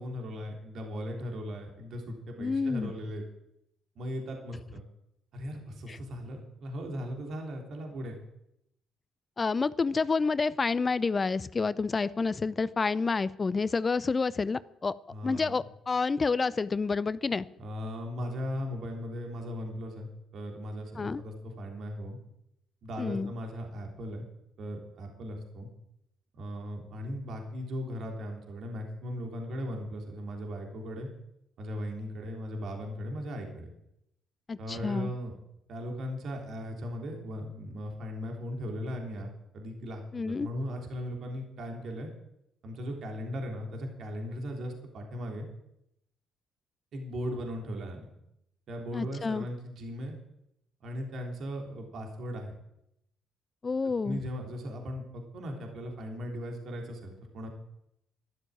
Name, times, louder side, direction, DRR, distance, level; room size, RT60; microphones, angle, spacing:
voice 1, 0.0-3.2 4.0-4.8 5.3-8.2 15.1-15.6 17.6-22.2 22.8-24.3 24.6-25.7 26.4-31.1 31.6-33.7 34.6-35.4 35.7-39.3 39.5-42.1 42.6-45.5 46.9-48.0 48.7-50.2 50.8-52.6 54.0-57.5, equal, 60° right, 2 dB, 3.4 m, -38 dB
voice 2, 2.4-2.9 5.9-6.0 9.4-14.9 15.2-17.5 21.0-21.2 23.0-23.3 34.5-35.1 40.1-40.5 48.9-49.5 53.6-54.2, left 4 dB, 35° left, 18 dB, 0.7 m, -29 dB
12.5 x 12.5 x 8.6 m, 0.82 s
hypercardioid pair, 45°, 0 cm